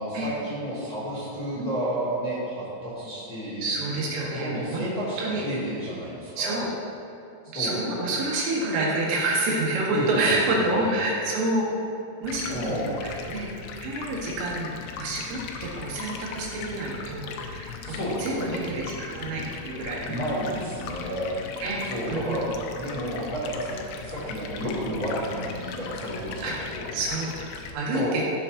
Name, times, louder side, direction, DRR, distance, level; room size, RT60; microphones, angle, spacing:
voice 1, 0.0-6.6 7.5-7.8 9.9-10.9 12.5-12.9 17.8-18.6 20.0-21.3 21.8-22.5 22.7-26.9 27.9-28.2, equal, 35° left, -10 dB, 1.6 m, -31 dB
voice 2, 3.6-4.8 5.2-5.4 6.4-6.7 7.5-11.6 12.2-13.5 13.8-14.7 15.0-20.3 21.6-22.4 26.4-28.2, right 2 dB, 80° right, -4 dB, 4.2 m, -28 dB
Stream, 12.2-27.7, left 5 dB, 80° left, 3.0 m, -39 dB
15.0 x 7.8 x 2.9 m, 2.6 s
omnidirectional pair, 5.8 m